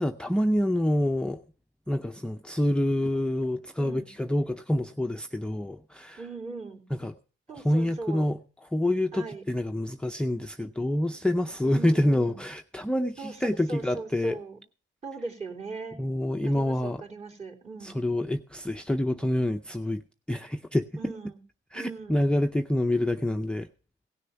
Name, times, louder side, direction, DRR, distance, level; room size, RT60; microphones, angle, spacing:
voice 1, 0.0-1.4 1.9-6.2 7.0-7.1 7.5-8.4 8.7-14.4 16.0-17.0 17.8-20.0 20.3-21.1 21.7-23.7, left 1 dB, 5° left, 0.5 m, -27 dB
voice 2, 3.8-4.1 6.2-6.9 7.5-8.2 9.1-9.4 11.6-12.4 13.2-14.6 15.0-16.0 16.4-18.0 21.0-21.4 21.7-22.2, right 3 dB, 35° right, 3.2 m, -39 dB
17.0 x 6.7 x 5.6 m
cardioid pair, 90°, 20 cm